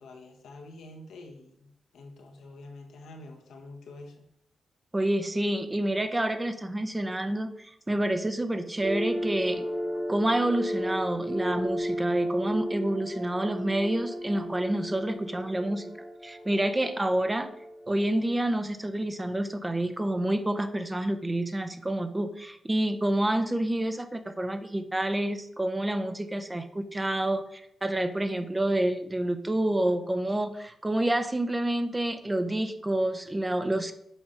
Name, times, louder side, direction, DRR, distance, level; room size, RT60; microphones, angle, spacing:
voice 1, 0.0-4.3, left 2 dB, 85° left, 2 dB, 1.4 m, -47 dB
voice 2, 4.9-9.7 10.1-15.9 16.2-17.5 17.9-33.9, right 1 dB, 15° right, 9 dB, 0.7 m, -28 dB
sound 1, 8.8-18.6, equal, 10° left, 1.2 m, -34 dB
7.1 x 3.7 x 5.7 m, 0.72 s
cardioid pair, 75°, 0 cm